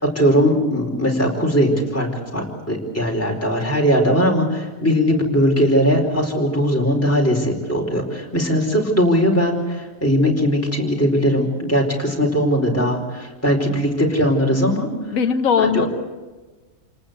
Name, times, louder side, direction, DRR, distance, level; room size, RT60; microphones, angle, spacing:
voice 1, 0.0-15.2 15.6-15.8, equal, 10° left, -1 dB, 4.6 m, -19 dB
voice 2, 15.1-15.9, left 7 dB, 90° left, 8 dB, 1.4 m, -19 dB
28.0 x 19.5 x 8.3 m, 1.2 s
omnidirectional pair, 1.4 m